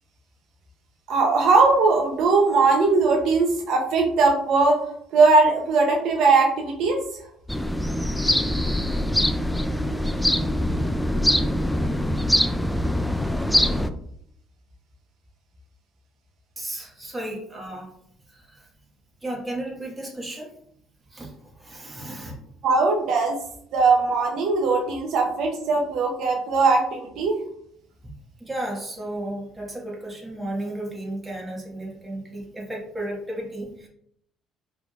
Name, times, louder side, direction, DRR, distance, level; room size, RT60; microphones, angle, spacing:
voice 1, 1.1-4.8 5.1-7.0 22.6-23.4 23.7-27.4, right 3 dB, 70° right, 2 dB, 0.7 m, -20 dB
sound 1, 7.5-13.9, left 1 dB, 5° left, 0.3 m, -23 dB
voice 2, 16.6-17.9 18.3-18.7 19.2-20.5 21.1-22.4 28.4-33.9, right 1 dB, 15° right, -3 dB, 1.5 m, -34 dB
5.0 x 3.2 x 2.4 m, 0.69 s
cardioid pair, 100°, 0 cm